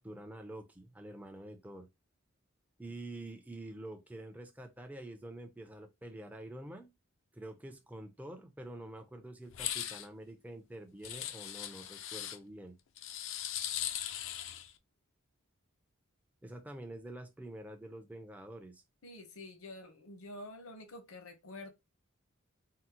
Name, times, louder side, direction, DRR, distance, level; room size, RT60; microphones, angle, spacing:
voice 1, 0.0-1.9 2.8-6.9 7.3-12.8 16.4-18.8, right 1 dB, 5° right, 0.4 m, -47 dB
sound 1, 9.5-10.1 11.0-12.4 13.0-14.7, left 11 dB, 60° left, 0.3 m, -39 dB
voice 2, 19.0-21.7, left 2 dB, 75° left, 0.8 m, -48 dB
3.6 x 2.0 x 2.8 m
head